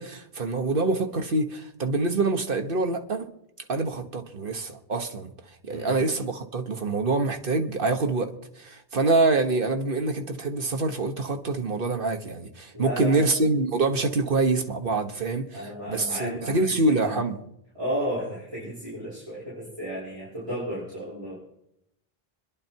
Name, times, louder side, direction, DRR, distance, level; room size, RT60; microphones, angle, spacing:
voice 1, 0.0-3.3 3.7-5.3 5.6-17.4, right 3 dB, 60° right, 5 dB, 1.5 m, -25 dB
voice 2, 5.7-6.0 12.7-13.3 15.5-17.2 17.7-21.4, equal, 30° right, -11 dB, 5.8 m, -33 dB
25.5 x 11.0 x 4.6 m, 0.81 s
omnidirectional pair, 1.0 m